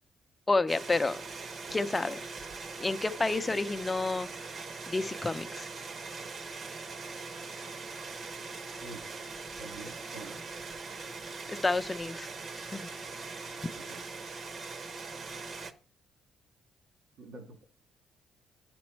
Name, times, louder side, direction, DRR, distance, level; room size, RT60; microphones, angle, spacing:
voice 1, 0.5-1.2 1.7-2.2 2.8-4.3 4.9-5.7 11.5-12.3 12.6-12.9, left 3 dB, 20° left, 0.5 m, -30 dB
sound 1, 0.7-15.7, right 4 dB, 50° right, 0.9 m, -41 dB
voice 2, 9.6-10.4 13.7-14.0 17.2-17.7, right 2 dB, 75° right, 2.1 m, -47 dB
9.5 x 6.1 x 4.4 m
cardioid pair, 90°, 0 cm